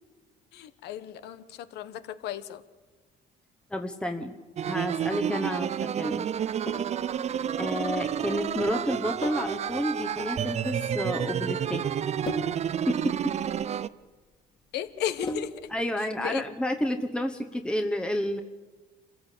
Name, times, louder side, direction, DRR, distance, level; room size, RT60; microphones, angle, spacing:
voice 1, 0.5-2.6 14.7-15.7 16.0-16.4, left 10 dB, 80° left, 13 dB, 1.2 m, -35 dB
voice 2, 3.7-4.3 4.7-6.3 7.6-11.8 12.9-13.3 15.7-18.4, left 1 dB, 5° left, 5 dB, 1.1 m, -30 dB
sound 1, 4.6-13.9, right 9 dB, 40° right, 0.6 m, -30 dB
Sink (filling or washing), 6.4-15.8, left 1 dB, 25° left, 2.5 m, -41 dB
26.5 x 15.0 x 8.5 m, 1.3 s
cardioid pair, 110°, 17 cm